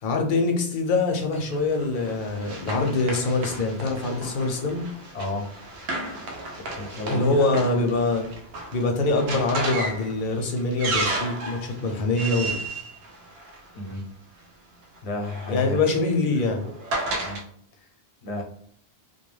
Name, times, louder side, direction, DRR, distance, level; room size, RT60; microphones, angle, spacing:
voice 1, 0.0-4.8 7.1-8.2 8.7-12.5 15.5-16.6, left 3 dB, 60° left, 4 dB, 0.7 m, -24 dB
Run, 1.3-14.0 15.0-17.4, right 2 dB, 70° right, 0.8 m, -34 dB
voice 2, 5.1-5.5 6.5-7.5 13.7-14.2 15.0-15.8 17.1-17.4 18.2-18.4, left 2 dB, 85° left, 2 dB, 0.9 m, -32 dB
2.2 x 2.2 x 3.1 m, 0.65 s
omnidirectional pair, 1.1 m